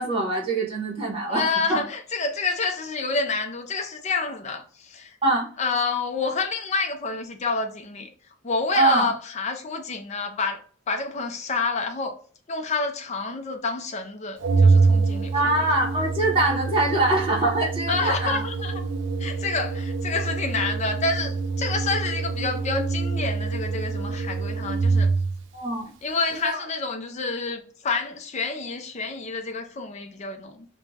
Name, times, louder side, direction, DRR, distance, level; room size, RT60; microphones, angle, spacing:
voice 1, 0.0-1.8 5.2-5.5 8.7-9.1 15.3-18.4 25.5-25.9 26.3-26.6, right 2 dB, 30° right, 1.0 m, -23 dB
voice 2, 1.3-5.2 5.6-8.1 8.4-10.6 10.9-12.1 12.5-15.4 17.9-18.8 19.2-25.1 26.0-30.7, left 4 dB, 35° left, 0.5 m, -28 dB
Organ, 14.4-25.4, right 4 dB, 65° right, 0.4 m, -25 dB
2.6 x 2.2 x 3.2 m
head